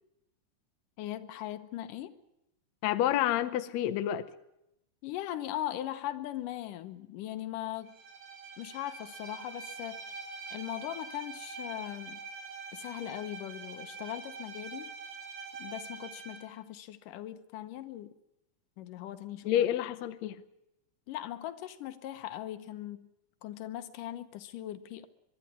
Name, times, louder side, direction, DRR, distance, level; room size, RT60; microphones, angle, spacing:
voice 1, 1.0-2.2 5.0-8.0 8.6-10.2 10.5-12.2 12.7-14.9 15.6-18.1 18.8-19.6 21.1-23.1 23.4-25.1, left 13 dB, 90° left, 2.6 m, -39 dB
voice 2, 2.8-4.3 19.4-20.4, left 12 dB, 70° left, 1.9 m, -29 dB
Bowed string instrument, 7.8-16.5, right 4 dB, 70° right, 3.7 m, -44 dB
23.0 x 12.0 x 9.6 m
omnidirectional pair, 3.6 m